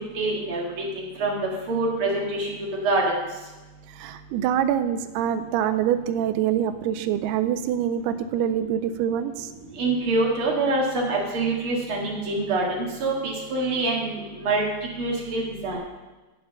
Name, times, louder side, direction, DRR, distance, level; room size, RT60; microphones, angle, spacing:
voice 1, 0.2-1.4 1.7-2.5 2.8-3.2 9.8-14.7 15.0-15.8, right 2 dB, 45° right, -2 dB, 2.0 m, -25 dB
voice 2, 4.0-9.5, right 10 dB, 85° right, 8 dB, 2.5 m, -25 dB
8.0 x 6.8 x 6.6 m, 1.1 s
omnidirectional pair, 4.5 m